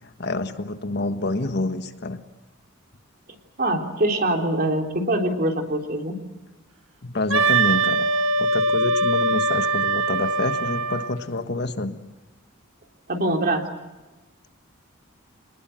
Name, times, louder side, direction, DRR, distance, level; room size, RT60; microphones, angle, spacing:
voice 1, 0.0-2.2 7.0-8.1 8.4-12.0, left 2 dB, 55° left, 8 dB, 1.4 m, -27 dB
voice 2, 3.6-6.2 13.1-13.6, right 1 dB, 45° right, 3 dB, 3.4 m, -23 dB
Wind instrument woodwind instrument, 7.3-11.1, right 2 dB, 70° right, 1.4 m, -22 dB
27.0 x 20.0 x 7.7 m, 1.1 s
head